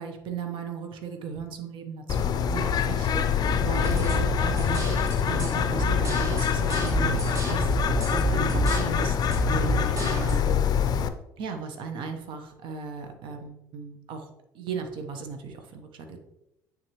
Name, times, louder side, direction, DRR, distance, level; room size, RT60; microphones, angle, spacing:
voice 1, 0.0-9.2 9.4-10.6 11.4-14.3 14.5-16.2, right 5 dB, 55° right, 5 dB, 1.0 m, -36 dB
Bird, 2.1-11.1, left 7 dB, 40° left, 0.5 m, -25 dB
sound 1, 3.8-10.4, right 1 dB, 30° right, 1.7 m, -30 dB
8.8 x 3.9 x 3.0 m, 0.86 s
figure-of-eight pair, 60°, 10 cm